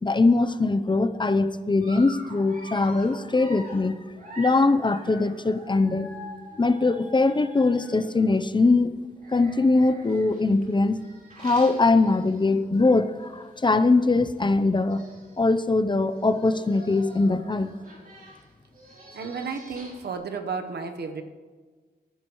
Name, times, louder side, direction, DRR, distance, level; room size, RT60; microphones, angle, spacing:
voice 1, 0.0-4.0 4.4-6.1 6.6-8.9 9.3-11.0 11.4-15.0 15.4-17.7, left 3 dB, 30° left, 12 dB, 0.7 m, -22 dB
Dog, 1.8-8.4 9.2-12.8 13.2-13.4 13.6-13.7 14.6-14.7 14.9-15.4 16.1-20.2, equal, 55° right, 3.7 m, -45 dB
voice 2, 19.1-21.2, right 5 dB, 75° right, 6 dB, 1.1 m, -32 dB
19.5 x 10.0 x 3.1 m, 1.4 s
cardioid pair, 65°, 17 cm